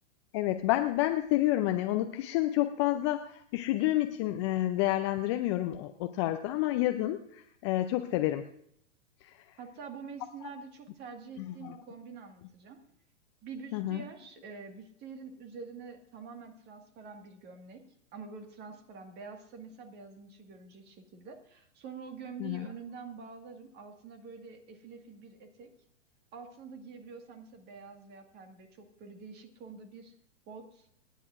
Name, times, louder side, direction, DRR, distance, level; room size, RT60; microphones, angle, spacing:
voice 1, 0.3-8.4 13.7-14.0 22.4-22.7, left 15 dB, 25° left, 8 dB, 0.4 m, -29 dB
voice 2, 9.6-12.8 13.4-25.7 26.3-30.1 30.5-30.9, right 5 dB, 25° right, 5 dB, 1.7 m, -47 dB
27.0 x 10.0 x 2.5 m, 0.67 s
hypercardioid pair, 125°, 37 cm